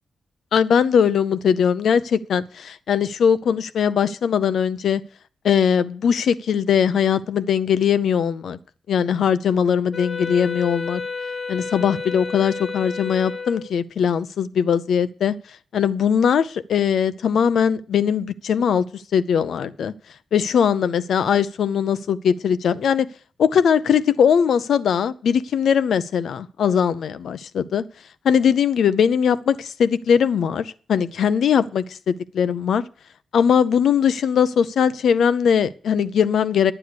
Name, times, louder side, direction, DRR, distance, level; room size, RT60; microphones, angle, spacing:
voice 1, 0.5-5.0 5.4-8.6 8.9-11.0 11.5-15.3 15.7-19.9 20.3-23.1 23.4-27.8 28.2-32.8 33.3-36.7, left 7 dB, 85° left, 15 dB, 0.7 m, -20 dB
Wind instrument woodwind instrument, 9.9-13.8, left 4 dB, 25° left, 0.9 m, -31 dB
9.9 x 9.5 x 6.7 m, 0.41 s
wide cardioid pair, 115°, 0 cm